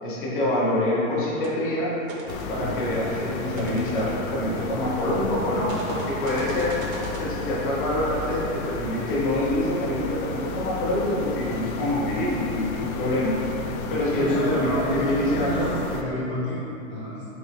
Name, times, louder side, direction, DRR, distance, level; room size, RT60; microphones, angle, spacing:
voice 1, 0.0-1.9 2.5-6.8 7.2-13.3 13.9-15.7, left 1 dB, 40° left, -6 dB, 0.7 m, -26 dB
sound 1, 1.2-1.6 2.0-5.0 5.7-7.2, right 2 dB, 70° right, 0.6 m, -41 dB
sound 2, 2.3-16.0, left 3 dB, 85° left, 0.5 m, -33 dB
voice 2, 2.6-2.9 13.7-16.6 16.9-17.2, equal, 5° left, -21 dB, 0.4 m, -30 dB
4.1 x 2.8 x 2.9 m, 3.0 s
supercardioid pair, 175°, 42 cm